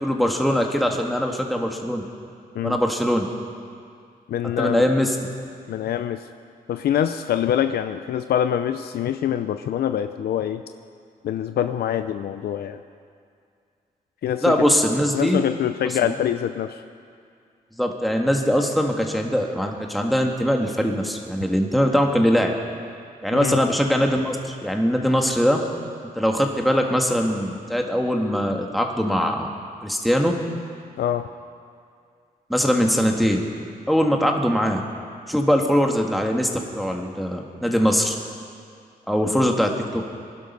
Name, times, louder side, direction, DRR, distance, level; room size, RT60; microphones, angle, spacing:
voice 1, 0.0-2.0 2.6-3.3 4.6-5.2 14.4-15.4 15.8-16.1 17.8-22.5 23.2-25.6 26.1-29.5 29.8-30.4 32.5-33.4 33.9-34.8 35.3-38.1 39.1-40.0, equal, ahead, 1 dB, 1.6 m, -21 dB
voice 2, 4.3-4.9 5.7-6.2 6.7-10.6 11.2-12.8 14.2-14.5 15.1-16.8 23.3-23.6 31.0-31.3, left 10 dB, 80° left, 9 dB, 0.6 m, -24 dB
21.0 x 11.5 x 5.4 m, 2.3 s
cardioid pair, 100°, 16 cm